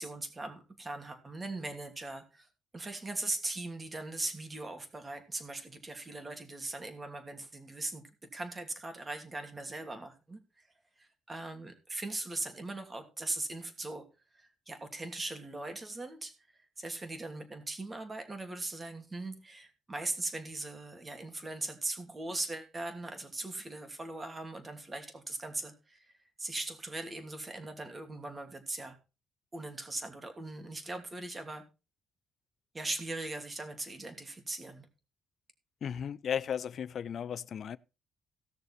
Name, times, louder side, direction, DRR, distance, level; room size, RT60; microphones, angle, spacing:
voice 1, 0.0-2.5 2.7-8.0 8.3-10.7 11.0-14.0 14.3-26.1 26.4-29.0 29.5-31.6 32.7-34.9, right 2 dB, 25° right, 2.8 m, -40 dB
voice 2, 35.8-37.8, left 8 dB, 60° left, 0.5 m, -35 dB
17.0 x 6.9 x 4.2 m
cardioid pair, 90°, 0 cm